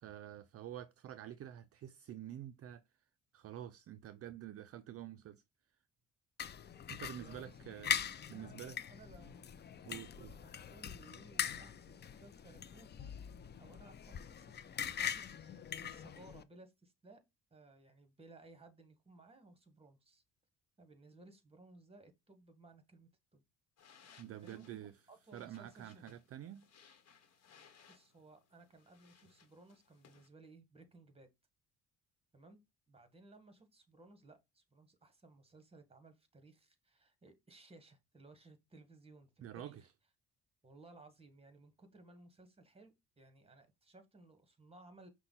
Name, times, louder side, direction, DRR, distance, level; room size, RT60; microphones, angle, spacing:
voice 1, 0.0-2.8 3.3-5.4 6.9-8.0 8.3-8.8 9.8-10.4 24.2-25.0 25.3-26.7 39.4-39.9, right 11 dB, 50° right, 0.4 m, -48 dB
sound 1, 6.4-16.4, left 8 dB, 35° left, 0.5 m, -42 dB
voice 2, 7.0-7.8 8.3-9.5 10.2-13.1 13.6-14.7 15.0-17.2 17.5-20.2 20.8-23.4 24.4-24.8 25.1-26.0 27.9-31.3 32.3-32.6 32.9-39.9 40.6-45.1, right 2 dB, 20° right, 1.3 m, -60 dB
sound 2, 23.8-30.3, left 6 dB, 55° left, 1.1 m, -65 dB
5.6 x 2.2 x 3.9 m
cardioid pair, 90°, 30 cm